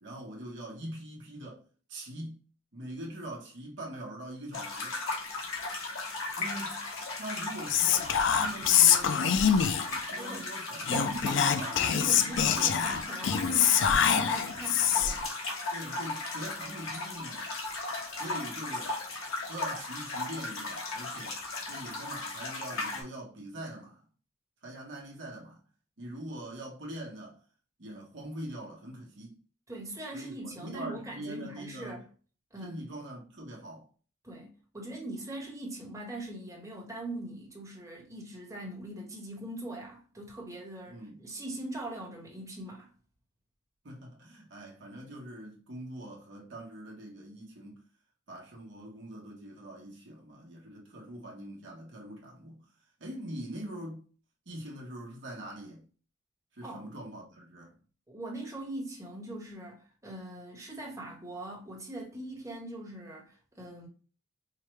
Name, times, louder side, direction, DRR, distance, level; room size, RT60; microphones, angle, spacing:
voice 1, 0.0-1.6 1.9-2.4 2.7-5.0 6.4-6.8 7.1-9.5 10.0-13.1 15.7-17.5 18.2-19.0 19.5-21.4 21.7-24.0 24.6-25.6 26.0-27.4 27.8-29.4 30.1-32.0 32.6-33.9 40.8-41.2 43.8-47.8 48.3-52.7 53.0-54.1 54.5-55.9 56.5-57.7, right 1 dB, 60° right, 1.1 m, -43 dB
sound 1, 4.5-23.0, left 3 dB, 90° left, 1.0 m, -36 dB
Whispering, 7.7-10.0 10.8-15.3, left 8 dB, 60° left, 0.3 m, -25 dB
voice 2, 10.2-10.5 10.9-15.3 29.7-32.0 32.5-32.8 34.2-42.9 56.6-56.8 58.1-63.9, right 1 dB, 15° right, 1.2 m, -41 dB
4.7 x 2.2 x 3.1 m
head